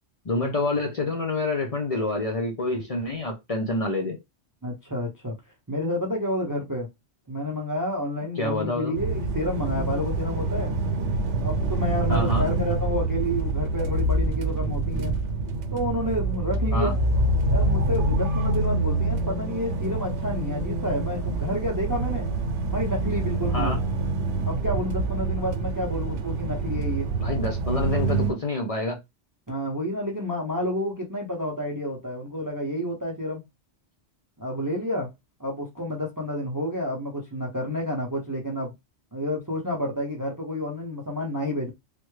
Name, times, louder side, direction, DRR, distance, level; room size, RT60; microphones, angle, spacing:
voice 1, 0.2-4.2 8.4-9.0 12.1-12.5 16.7-16.9 23.5-23.8 27.2-29.0, left 2 dB, 40° left, 0.6 m, -27 dB
voice 2, 4.6-5.4 5.7-6.9 7.3-10.7 11.4-15.2 15.7-17.0 17.5-22.3 22.7-23.8 24.4-27.1 29.5-33.4 34.4-35.1 35.4-38.7 39.1-41.7, left 1 dB, 25° right, 0.5 m, -30 dB
sound 1, 8.9-28.3, right 2 dB, 90° right, 0.9 m, -26 dB
3.3 x 2.2 x 3.1 m
omnidirectional pair, 1.1 m